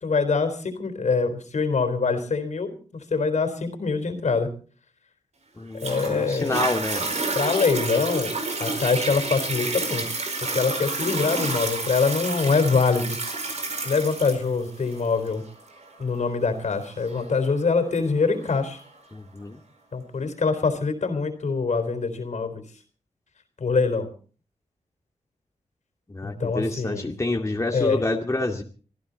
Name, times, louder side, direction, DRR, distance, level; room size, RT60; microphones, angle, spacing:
voice 1, 0.0-2.7 3.1-4.5 5.8-6.6 7.3-8.3 8.6-10.2 10.5-13.2 13.8-15.4 16.0-18.8 19.9-22.6 23.6-24.1 26.2-27.1 27.7-28.0, left 4 dB, 65° left, 8 dB, 4.0 m, -24 dB
voice 2, 5.6-7.1 19.1-19.6 26.1-28.6, left 2 dB, 25° left, 2 dB, 2.2 m, -28 dB
Toilet flush, 5.8-18.8 19.4-19.5, right 3 dB, 60° right, 4.6 m, -30 dB
24.5 x 14.5 x 4.1 m, 0.41 s
cardioid pair, 65°, 13 cm